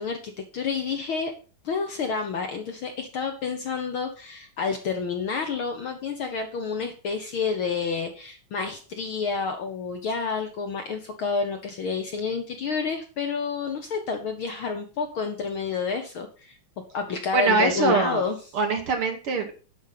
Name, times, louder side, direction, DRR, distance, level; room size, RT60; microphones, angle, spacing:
voice 1, 0.0-1.3 1.6-16.6 16.9-18.4, left 5 dB, 60° left, 5 dB, 1.5 m, -29 dB
voice 2, 17.3-18.2 18.5-19.5, right 4 dB, 60° right, 5 dB, 1.7 m, -23 dB
11.0 x 5.2 x 5.8 m, 0.37 s
omnidirectional pair, 3.4 m